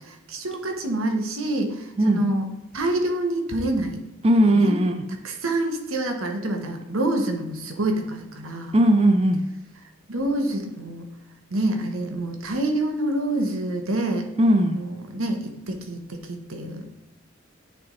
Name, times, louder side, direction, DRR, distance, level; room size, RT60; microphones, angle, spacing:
voice 1, 0.0-2.4 2.7-4.0 4.5-4.8 5.2-8.7 10.1-11.1 11.5-14.3 14.7-16.8, right 1 dB, 80° right, 4 dB, 1.1 m, -27 dB
voice 2, 4.2-5.0 8.7-9.5 14.4-14.8, right 1 dB, 30° right, 6 dB, 0.4 m, -18 dB
9.3 x 3.5 x 3.9 m, 0.95 s
head